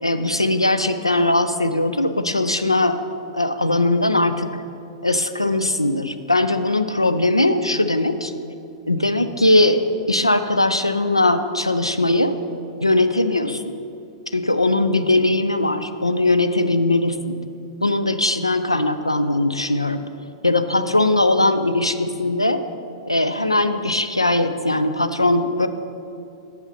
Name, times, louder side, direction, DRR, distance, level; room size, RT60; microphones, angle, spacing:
voice 1, 0.0-3.0 3.3-4.5 5.0-8.3 8.9-9.8 10.1-12.3 12.8-13.7 14.3-17.4 17.8-20.0 20.4-22.6 23.1-25.7, left 2 dB, 90° left, 10 dB, 0.4 m, -20 dB
7.6 x 5.6 x 5.7 m, 2.6 s
figure-of-eight pair, 100°, 3 cm